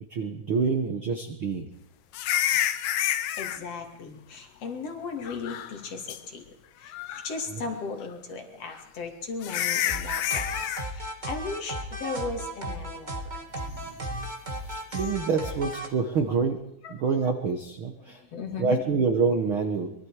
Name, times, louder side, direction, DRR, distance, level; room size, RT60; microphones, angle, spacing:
voice 1, 0.1-1.7 7.5-7.7 13.8-14.3 14.6-16.6 16.9-18.2 18.6-19.9, right 5 dB, 70° right, 5 dB, 1.2 m, -27 dB
sound 1, 2.1-3.6 5.3-5.8 6.1-6.2 6.9-7.4 8.7-8.8 9.4-10.9 14.9-15.1, left 11 dB, 70° left, 1.9 m, -28 dB
voice 2, 3.4-6.4 6.8-13.1 16.8-16.9 18.3-18.8, left 4 dB, 45° left, 4 dB, 3.2 m, -36 dB
sound 2, 9.9-15.9, right 1 dB, 40° right, 0.6 m, -35 dB
24.0 x 22.5 x 4.9 m, 0.80 s
omnidirectional pair, 4.4 m